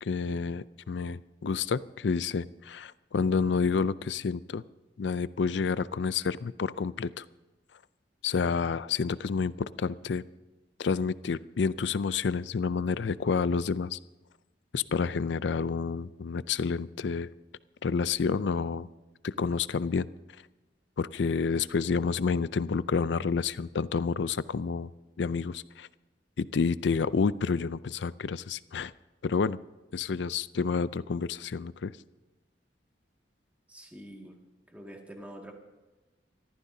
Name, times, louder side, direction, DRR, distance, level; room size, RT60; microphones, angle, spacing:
voice 1, 0.0-4.6 5.0-7.2 8.2-10.2 10.8-14.0 14.7-17.3 17.8-18.9 19.2-20.1 21.0-24.9 25.2-25.9 26.4-28.9 29.2-29.6 29.9-31.9, left 5 dB, 90° left, 17 dB, 0.5 m, -29 dB
voice 2, 33.7-34.3 34.7-35.5, equal, 10° right, 0 dB, 2.0 m, -45 dB
28.5 x 14.0 x 2.7 m, 1.1 s
head